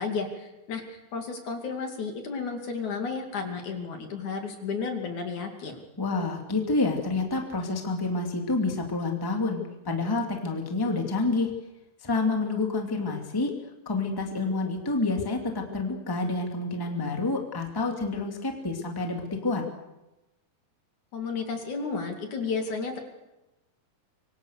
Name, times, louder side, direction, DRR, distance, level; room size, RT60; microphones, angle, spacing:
voice 1, 0.0-5.8 21.1-23.0, left 4 dB, 55° left, 4 dB, 3.8 m, -32 dB
voice 2, 6.0-11.5 12.0-13.5 13.9-19.6, left 3 dB, 5° left, 2 dB, 2.2 m, -28 dB
25.5 x 25.0 x 6.7 m, 1.0 s
omnidirectional pair, 4.4 m